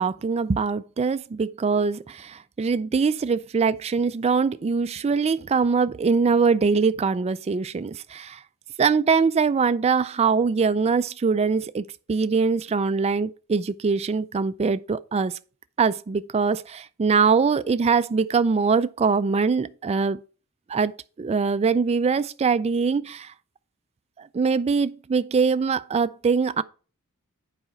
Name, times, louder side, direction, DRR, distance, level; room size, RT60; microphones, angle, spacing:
voice 1, 0.0-8.4 8.8-15.4 15.8-20.2 20.7-20.9 21.2-23.3 24.2-26.6, right 5 dB, 30° right, 0.3 m, -23 dB
7.9 x 5.0 x 4.3 m
head